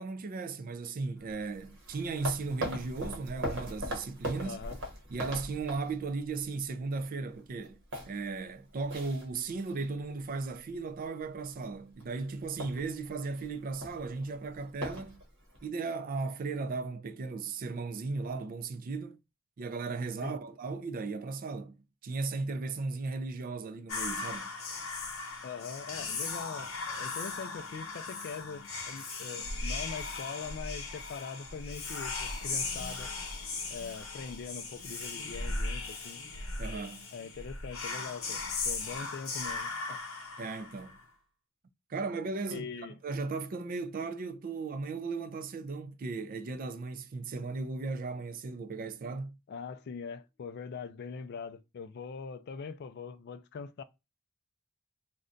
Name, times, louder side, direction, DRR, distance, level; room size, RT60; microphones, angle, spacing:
voice 1, 0.0-4.6 5.1-15.2 15.6-19.2 19.6-21.8 22.0-24.5 36.6-37.1 40.4-41.0 41.9-42.7 43.0-49.4, right 3 dB, 40° right, 0.3 m, -36 dB
sound 1, 1.2-6.4 6.8-7.0 7.4-10.1 10.4-10.7 11.2-11.6 11.9-12.0 12.3-15.7, equal, 55° right, 0.9 m, -40 dB
voice 2, 4.4-4.8 20.2-20.4 25.4-33.1 33.7-36.2 37.1-40.0 42.5-43.0 49.5-53.8, left 5 dB, 50° left, 0.3 m, -42 dB
Whispering, 23.9-41.0, left 3 dB, 65° left, 0.9 m, -38 dB
2.5 x 2.2 x 3.7 m
head